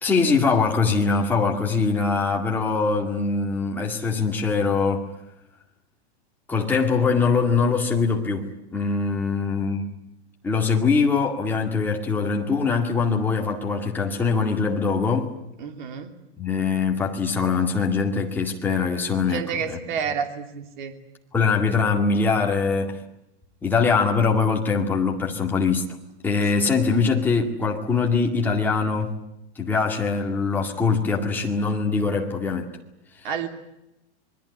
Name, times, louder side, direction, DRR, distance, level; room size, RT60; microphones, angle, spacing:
voice 1, 0.0-5.1 6.5-10.0 10.4-15.3 16.4-19.8 21.3-23.0 23.6-26.0 26.2-29.1 29.6-32.7, left 4 dB, 5° left, -1 dB, 2.1 m, -22 dB
voice 2, 15.6-16.1 19.3-20.9 33.2-33.5, right 7 dB, 45° right, 6 dB, 3.0 m, -29 dB
26.5 x 21.5 x 9.8 m, 0.88 s
supercardioid pair, 175°, 33 cm